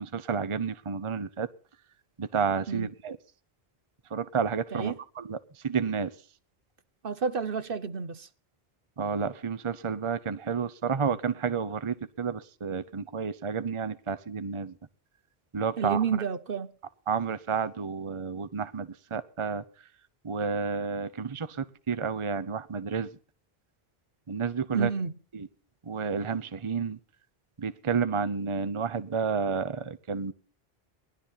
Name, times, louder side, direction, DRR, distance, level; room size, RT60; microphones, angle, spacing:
voice 1, 0.0-1.5 2.2-3.2 4.1-5.4 5.6-6.1 9.0-14.7 15.5-16.1 17.1-19.6 20.2-23.1 24.3-24.9 25.3-25.5 25.8-27.0 27.6-30.3, right 6 dB, 30° right, 0.8 m, -30 dB
voice 2, 7.0-8.3 15.8-16.7 24.7-25.1, right 6 dB, 60° right, 1.1 m, -30 dB
19.5 x 12.0 x 5.6 m
omnidirectional pair, 1.0 m